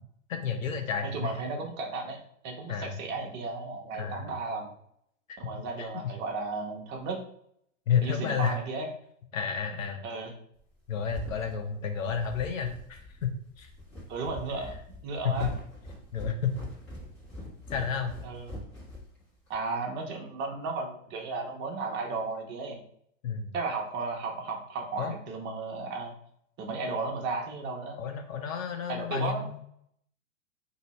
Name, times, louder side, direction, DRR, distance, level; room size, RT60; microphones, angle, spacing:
voice 1, 0.3-1.3 2.7-2.9 3.9-4.3 5.3-5.4 5.8-6.1 7.9-8.6 9.3-10.0 10.9-13.7 15.2-15.5 16.1-16.7 17.7-18.1 23.2-23.5 25.0-25.2 28.0-29.6, left 7 dB, 75° left, 5 dB, 0.8 m, -31 dB
voice 2, 1.0-4.7 5.4-7.2 8.0-8.9 10.0-10.3 14.1-14.7 15.0-15.5 18.2-18.5 19.5-22.8 23.5-26.1 26.6-28.0 28.9-29.4, right 3 dB, 25° right, 1 dB, 0.7 m, -34 dB
sound 1, 10.7-19.6, left 1 dB, 25° left, 1.4 m, -43 dB
2.7 x 2.7 x 4.2 m, 0.68 s
hypercardioid pair, 120°, 40 cm